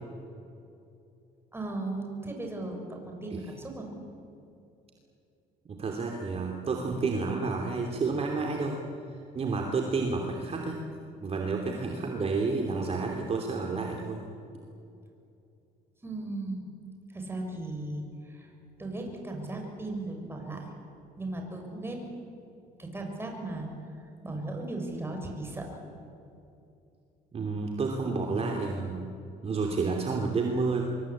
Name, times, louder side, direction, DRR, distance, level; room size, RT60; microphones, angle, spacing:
voice 1, 1.5-3.9 16.0-16.6 17.1-18.5 18.8-20.7 21.2-22.0 22.8-23.7 24.2-25.8, right 2 dB, 15° right, 2 dB, 6.9 m, -36 dB
voice 2, 5.6-8.8 9.3-10.8 11.2-14.2 27.3-29.1 29.4-30.8, right 4 dB, 35° right, 2 dB, 3.0 m, -30 dB
25.0 x 23.0 x 8.8 m, 2.7 s
cardioid pair, 110°, 17 cm